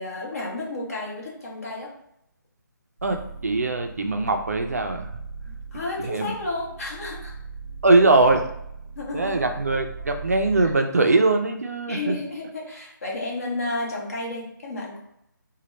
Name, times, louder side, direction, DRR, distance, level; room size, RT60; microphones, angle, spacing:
voice 1, 0.0-1.9 5.5-7.3 9.0-9.3 11.9-15.0, left 2 dB, 45° left, -3 dB, 1.2 m, -32 dB
sound 1, 3.0-10.7, right 4 dB, 20° right, 0.8 m, -39 dB
voice 2, 3.0-5.1 6.0-6.3 7.8-8.4 9.1-12.2, right 2 dB, 45° right, 5 dB, 0.4 m, -21 dB
4.0 x 2.2 x 3.1 m, 0.77 s
hypercardioid pair, 175°, 11 cm